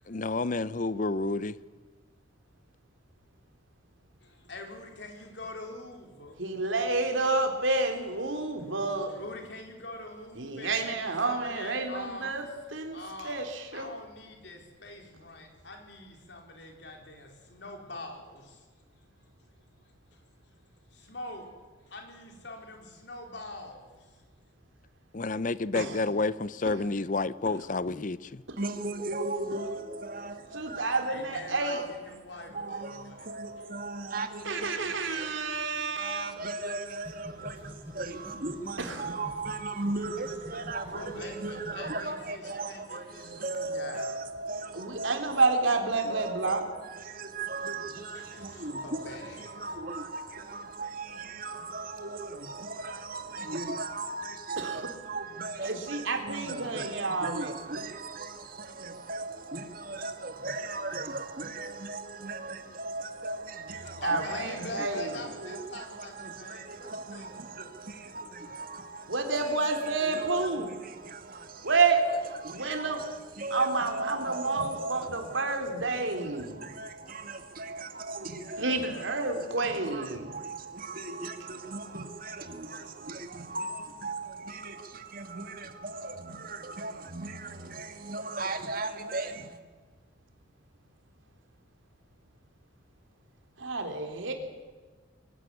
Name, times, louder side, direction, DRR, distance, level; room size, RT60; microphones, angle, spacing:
voice 1, 0.1-1.5 25.1-28.4, left 3 dB, 40° left, 0.6 m, -30 dB
voice 2, 4.2-6.4 8.3-8.4 9.1-12.3 12.9-13.4 13.7-18.7 20.1-20.2 20.9-21.5 21.9-24.2 31.0-33.7 39.8-39.9 40.2-40.3 40.9-44.2 47.8-49.8 63.7-67.6, left 2 dB, 60° left, 4.3 m, -44 dB
voice 3, 6.4-9.1 10.4-12.5 12.7-13.0 13.2-13.9 25.7-26.1 28.5-28.6 30.5-31.8 34.4-36.4 38.8-39.1 44.7-46.7 54.6-54.9 55.6-57.5 64.0-65.2 69.1-70.8 71.6-72.0 72.5-73.0 73.5-76.6 78.6-80.3 93.6-94.3, right 3 dB, 80° right, 3.6 m, -29 dB
voice 4, 28.6-31.1 31.5-31.8 32.3-35.3 36.0-45.5 46.0-71.7 72.4-75.5 75.9-89.6, right 2 dB, 45° right, 2.2 m, -38 dB
sound 1, 37.0-42.0, equal, 10° right, 7.3 m, -45 dB
23.5 x 16.5 x 9.8 m
head